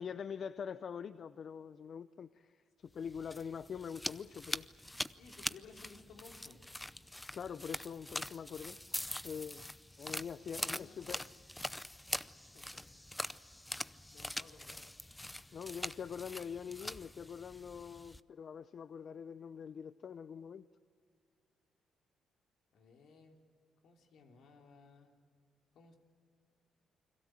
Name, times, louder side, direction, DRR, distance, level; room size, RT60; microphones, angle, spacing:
voice 1, 0.0-4.7 7.3-8.8 9.2-9.6 10.0-11.2 15.5-20.7, left 7 dB, 55° left, 14 dB, 0.6 m, -44 dB
sound 1, 3.0-18.2, left 1 dB, 10° left, 0.6 m, -43 dB
voice 2, 5.2-6.6 10.5-11.1 12.4-12.8 13.8-14.8 22.7-23.4 23.8-25.2 25.7-26.0, left 4 dB, 75° left, 3 dB, 3.2 m, -59 dB
29.5 x 22.0 x 7.6 m, 2.3 s
cardioid pair, 90°, 0 cm